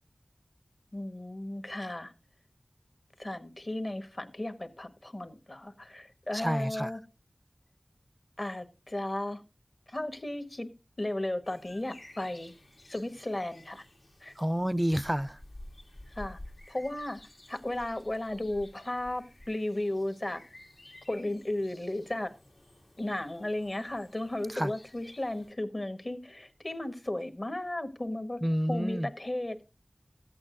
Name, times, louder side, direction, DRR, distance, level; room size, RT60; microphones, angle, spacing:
voice 1, 0.9-2.1 3.2-7.0 8.4-9.4 9.9-10.7 11.0-12.5 12.9-13.8 14.2-14.3 16.1-16.4 16.7-17.2 17.5-20.4 21.1-22.3 23.0-28.4 28.7-29.6, left 1 dB, 50° left, 1.3 m, -35 dB
voice 2, 6.3-6.9 14.4-15.4 24.6-24.7 28.4-29.1, equal, 15° right, 0.4 m, -29 dB
sound 1, 11.4-25.5, left 1 dB, 70° left, 1.6 m, -52 dB
14.0 x 8.5 x 2.5 m
wide cardioid pair, 40°, 0 cm